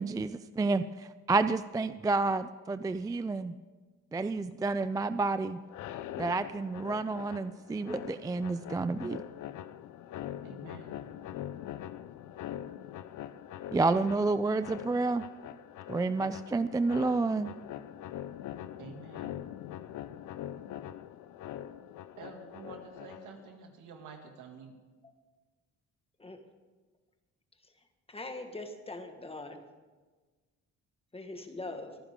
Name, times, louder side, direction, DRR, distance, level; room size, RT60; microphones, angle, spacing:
voice 1, 0.0-3.5 4.1-5.6 6.2-9.2 13.7-15.2 15.9-17.5, right 3 dB, 10° right, 13 dB, 0.3 m, -30 dB
sound 1, 5.7-23.5, left 11 dB, 80° left, 0.6 m, -43 dB
voice 2, 10.4-11.0 18.8-19.3 22.2-24.7, right 4 dB, 85° right, 3 dB, 2.4 m, -48 dB
voice 3, 28.1-29.6 31.1-32.0, left 2 dB, 20° left, 6 dB, 1.5 m, -42 dB
24.5 x 9.9 x 3.7 m, 1.3 s
cardioid pair, 90°, 30 cm